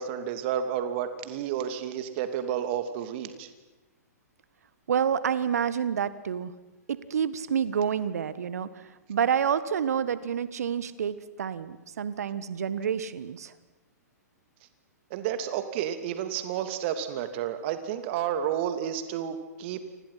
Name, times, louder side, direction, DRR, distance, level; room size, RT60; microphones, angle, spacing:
voice 1, 0.0-3.5 15.1-19.8, right 9 dB, 45° right, 9 dB, 2.9 m, -31 dB
voice 2, 4.9-6.5 6.9-8.7 9.1-13.5, right 8 dB, 65° right, 15 dB, 1.6 m, -28 dB
29.5 x 26.0 x 5.9 m, 1.1 s
figure-of-eight pair, 110°, 9 cm